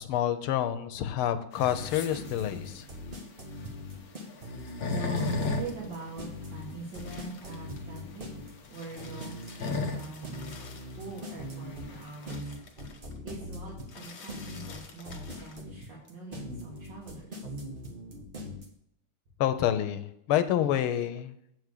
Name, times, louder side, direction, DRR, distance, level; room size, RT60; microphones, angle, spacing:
voice 1, 0.0-2.9 19.4-21.3, left 11 dB, 90° left, 11 dB, 1.6 m, -28 dB
sound 1, 1.5-12.4, left 3 dB, 55° left, 1.1 m, -36 dB
sound 2, 1.6-18.6, left 1 dB, 30° right, 1.2 m, -41 dB
voice 2, 4.9-10.5 10.9-12.4 13.2-17.4, right 3 dB, 60° right, -5 dB, 2.5 m, -43 dB
sound 3, 5.2-8.2 8.5-11.4 11.7-16.1 16.3-17.2, left 5 dB, 75° left, 2.2 m, -51 dB
8.3 x 4.8 x 6.6 m, 0.77 s
omnidirectional pair, 2.3 m